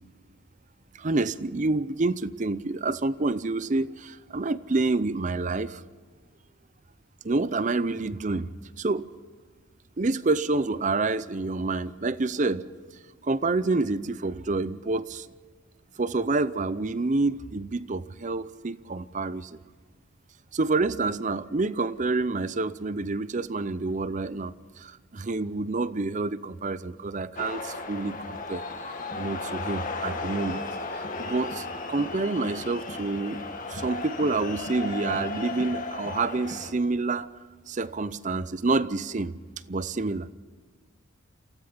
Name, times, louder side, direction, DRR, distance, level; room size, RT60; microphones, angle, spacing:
voice 1, 0.9-5.8 7.2-8.5 8.8-9.1 10.0-12.6 13.2-15.3 16.0-19.6 20.5-28.6 29.2-30.6 30.9-33.4 33.7-37.3 37.7-39.3 39.7-40.3, right 3 dB, 35° right, 16 dB, 0.6 m, -28 dB
sound 1, 27.4-36.7, left 3 dB, 40° left, 1.7 m, -35 dB
28.0 x 16.5 x 5.8 m, 1.5 s
head